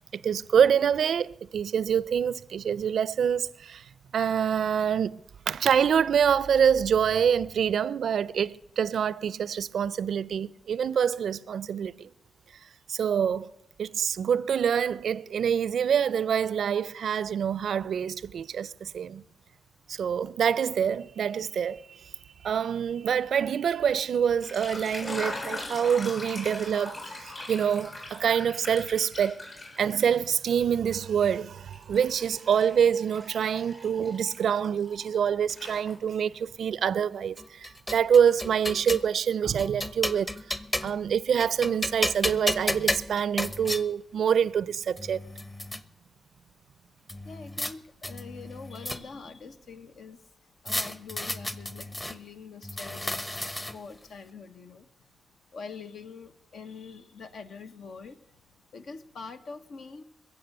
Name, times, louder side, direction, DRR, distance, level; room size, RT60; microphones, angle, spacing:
voice 1, 0.1-3.8 4.1-12.1 12.9-13.5 13.8-19.2 19.9-22.1 22.4-29.5 29.8-40.3 40.8-45.3, right 8 dB, 75° right, 0.4 m, -26 dB
sound 1, 24.3-30.7 31.0-35.2 35.5-36.3, left 2 dB, 50° left, 6.3 m, -41 dB
sound 2, 37.4-39.1 39.6-41.1 41.4-43.8 44.6-44.7 45.0-45.8 47.1-47.7 48.0-49.3 50.7-52.2 52.6-53.9, left 1 dB, 25° left, 1.0 m, -32 dB
voice 2, 47.2-50.2 50.6-53.2 53.7-54.9 55.5-58.2 58.7-60.0, left 5 dB, 75° left, 1.0 m, -44 dB
21.5 x 7.6 x 6.6 m
supercardioid pair, 55°, 0 cm